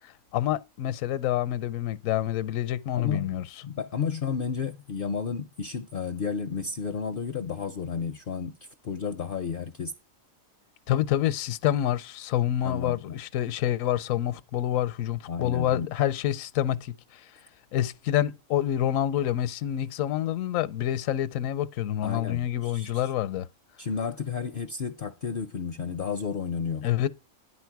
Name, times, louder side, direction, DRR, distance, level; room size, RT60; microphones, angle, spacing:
voice 1, 0.3-3.4 10.9-17.2 17.7-23.5 26.8-27.1, left 12 dB, 80° left, 1.0 m, -27 dB
voice 2, 2.9-3.3 3.6-8.6 8.8-9.9 12.6-13.2 15.3-15.9 22.0-23.1 23.8-27.1, left 6 dB, 60° left, 0.6 m, -32 dB
10.5 x 4.4 x 4.6 m
omnidirectional pair, 1.4 m